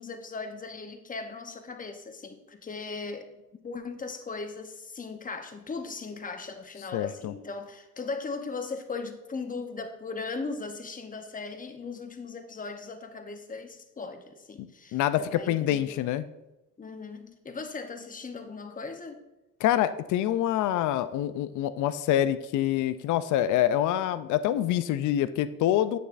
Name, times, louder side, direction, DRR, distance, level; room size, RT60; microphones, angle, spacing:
voice 1, 0.0-3.3 3.6-16.0 16.8-19.2, left 4 dB, 25° left, 6 dB, 0.8 m, -38 dB
voice 2, 6.9-7.3 14.6-16.2 19.6-26.0, left 12 dB, 80° left, 14 dB, 0.5 m, -26 dB
8.7 x 6.7 x 2.5 m, 0.98 s
cardioid pair, 90°, 30 cm